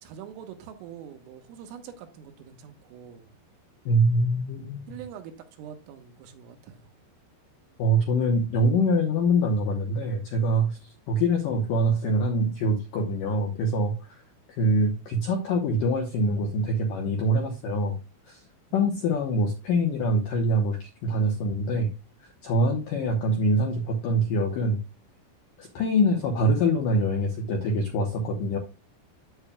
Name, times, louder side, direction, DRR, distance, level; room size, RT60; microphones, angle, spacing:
voice 1, 0.0-3.3 4.9-6.9 18.7-19.1, right 8 dB, 85° right, 3.9 m, -44 dB
voice 2, 3.9-4.9 7.8-10.8 11.1-14.2 14.6-18.0 18.3-18.4 18.7-21.9 22.4-24.8 25.6-28.6, equal, 80° left, 1.9 m, -24 dB
9.6 x 8.5 x 2.3 m
omnidirectional pair, 5.7 m